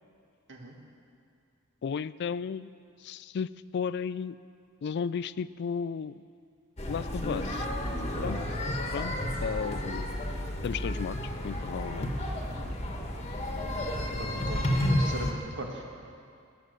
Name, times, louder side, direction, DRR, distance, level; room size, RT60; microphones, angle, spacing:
voice 1, 1.8-2.7 3.0-4.4 4.8-6.2 6.9-7.7 8.2-8.4 8.9-9.2 9.4-10.2 10.6-11.2 11.4-12.1, left 6 dB, 50° left, 18 dB, 0.3 m, -34 dB
sound 1, 6.8-15.3, left 1 dB, 30° left, 1.4 m, -31 dB
voice 2, 14.2-14.7 15.0-15.8, right 1 dB, 55° right, 1 dB, 1.9 m, -39 dB
18.0 x 9.2 x 6.7 m, 2.4 s
head